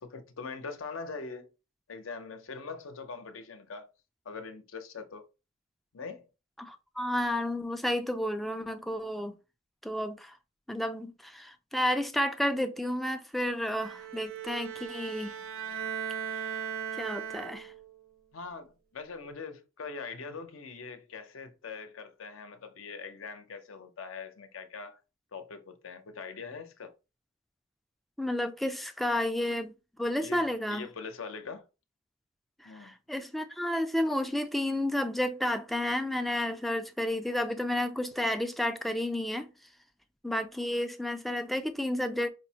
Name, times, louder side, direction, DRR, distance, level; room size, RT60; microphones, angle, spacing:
voice 1, 0.0-1.5 1.9-3.9 4.3-5.2 5.9-6.3 18.3-25.0 25.3-26.9 30.2-31.7 32.6-32.9, left 4 dB, 70° left, 0.7 m, -42 dB
voice 2, 6.6-9.3 9.8-10.4 10.7-15.3 17.0-17.7 28.2-29.7 30.0-30.9 32.6-39.5 40.2-42.3, left 1 dB, ahead, 0.3 m, -31 dB
Bowed string instrument, 13.7-17.9, right 8 dB, 80° right, 0.7 m, -38 dB
5.0 x 2.0 x 2.8 m
head